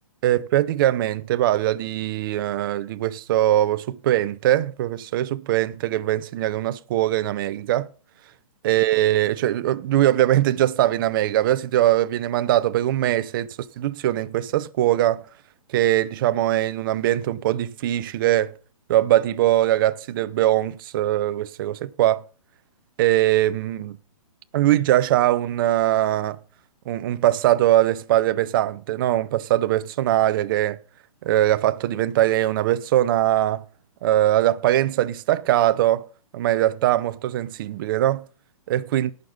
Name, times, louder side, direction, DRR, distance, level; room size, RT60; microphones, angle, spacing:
voice 1, 0.2-7.9 8.6-15.2 15.7-18.5 18.9-22.2 23.0-24.0 24.5-26.4 26.9-30.8 31.2-33.6 34.0-36.1 36.3-38.2 38.7-39.1, right 13 dB, 35° right, 0.7 m, -21 dB
18.0 x 6.7 x 5.4 m
hypercardioid pair, 150°, 19 cm